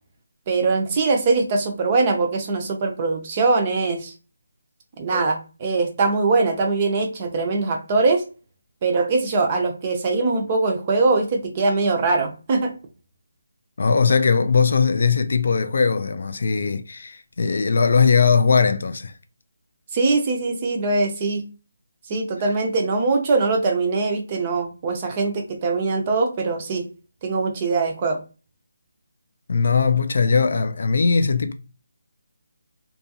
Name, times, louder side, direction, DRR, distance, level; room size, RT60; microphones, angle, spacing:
voice 1, 0.5-4.1 5.0-8.2 8.8-12.7 19.9-21.4 22.1-26.8 27.2-28.2, right 3 dB, 25° right, 0.5 m, -22 dB
voice 2, 13.8-19.1 29.5-31.5, left 5 dB, 55° left, 0.3 m, -19 dB
2.6 x 2.3 x 2.7 m
hypercardioid pair, 170°, 0 cm